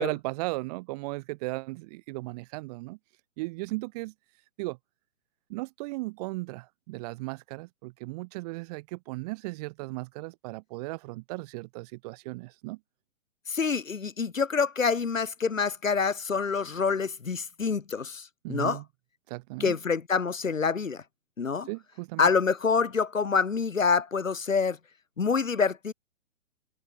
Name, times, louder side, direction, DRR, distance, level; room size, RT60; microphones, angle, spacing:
voice 1, 0.0-3.0 3.4-4.1 4.6-4.8 5.5-12.8 18.4-18.8 19.3-19.8 21.7-22.3, right 24 dB, 30° right, 2.6 m, -36 dB
voice 2, 13.5-18.8 19.6-21.0 21.4-21.7 22.2-24.8 25.2-25.9, left 5 dB, 70° left, 2.4 m, -26 dB
figure-of-eight pair, 125°, 41 cm